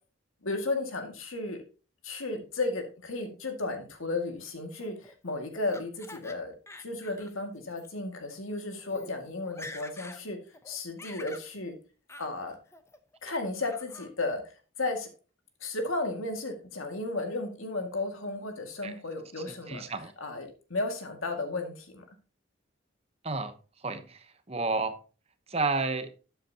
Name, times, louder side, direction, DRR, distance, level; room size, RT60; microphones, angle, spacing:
voice 1, 0.4-1.6 2.0-6.5 6.8-10.4 10.7-11.8 12.2-12.6 13.2-15.1 15.6-19.8 20.2-22.0, left 2 dB, 85° left, 2.1 m, -34 dB
Laughter, 4.8-6.4 6.7-7.3 7.7-7.9 8.5-8.6 8.9-9.1 9.4-10.2 10.5-11.5 12.1-12.3 12.7-13.2 13.6-14.1, left 2 dB, 15° left, 0.7 m, -46 dB
voice 2, 19.7-20.1 23.2-23.5 23.8-24.2 24.5-24.9 25.5-26.1, right 3 dB, 30° right, 0.9 m, -30 dB
12.0 x 7.9 x 2.9 m
head